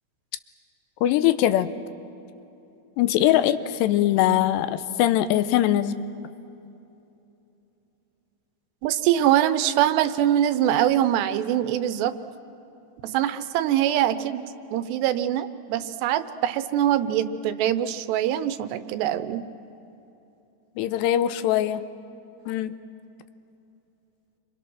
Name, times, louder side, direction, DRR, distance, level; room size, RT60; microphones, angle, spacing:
voice 1, 1.0-1.7 3.0-6.0 20.8-21.8 22.5-22.8, left 12 dB, 85° left, 12 dB, 2.9 m, -22 dB
voice 2, 8.8-12.1 13.0-14.4 14.7-19.4, right 11 dB, 80° right, 12 dB, 2.9 m, -23 dB
29.5 x 25.5 x 6.2 m, 2.9 s
omnidirectional pair, 5.0 m